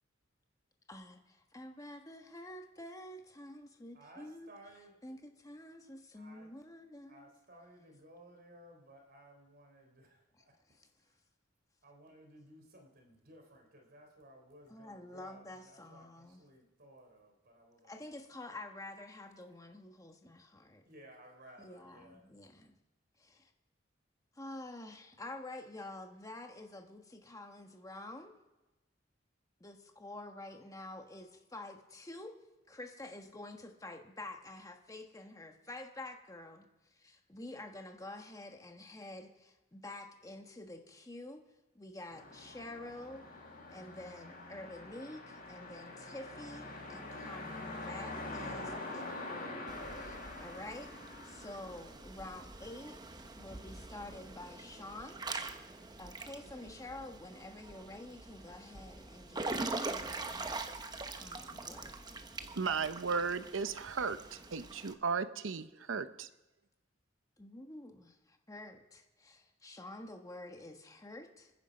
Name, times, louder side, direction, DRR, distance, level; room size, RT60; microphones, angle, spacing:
voice 1, 0.9-4.5 5.0-7.3 10.7-10.9 14.7-16.4 17.8-20.8 21.6-22.8 23.2-23.5 24.3-28.3 29.6-32.3 32.7-36.6 37.0-41.4 41.7-43.2 43.7-50.9 51.2-53.0 53.4-55.2 56.0-60.5 61.2-62.0 67.4-71.5, left 2 dB, 15° left, 1.3 m, -48 dB
voice 2, 3.9-5.0 6.1-6.5 7.1-10.6 11.0-11.2 11.8-18.2 20.9-22.2, right 1 dB, 50° right, 3.5 m, -58 dB
sound 1, 42.1-52.3, left 2 dB, 50° left, 5.9 m, -45 dB
Water / Splash splatter / Drip, 49.7-64.9, right 3 dB, 20° right, 0.9 m, -44 dB
voice 3, 62.5-66.3, right 5 dB, 80° right, 0.8 m, -35 dB
27.0 x 10.0 x 5.2 m
head